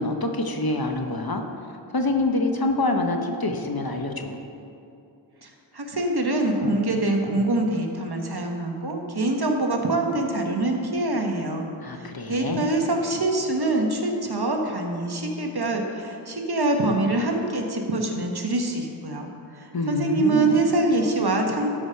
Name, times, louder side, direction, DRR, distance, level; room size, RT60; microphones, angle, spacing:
voice 1, 0.0-1.4 1.9-4.4 11.8-12.7 19.7-20.6, left 2 dB, 45° left, 4 dB, 1.0 m, -26 dB
voice 2, 5.4-11.7 12.0-21.8, right 2 dB, 50° right, 2 dB, 1.2 m, -25 dB
12.5 x 5.0 x 5.6 m, 2.7 s
wide cardioid pair, 45°, 49 cm